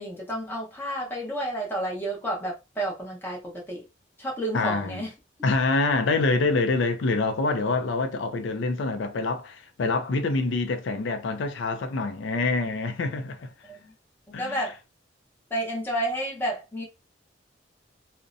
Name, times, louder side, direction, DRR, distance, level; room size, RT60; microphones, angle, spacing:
voice 1, 0.0-3.8 4.2-5.1 5.4-5.5 13.6-13.9 14.3-14.8 15.5-16.8, right 1 dB, 10° left, 0.8 m, -31 dB
voice 2, 4.5-5.0 5.4-13.5 14.3-14.6, left 3 dB, 90° left, 0.4 m, -26 dB
2.6 x 2.1 x 2.5 m
head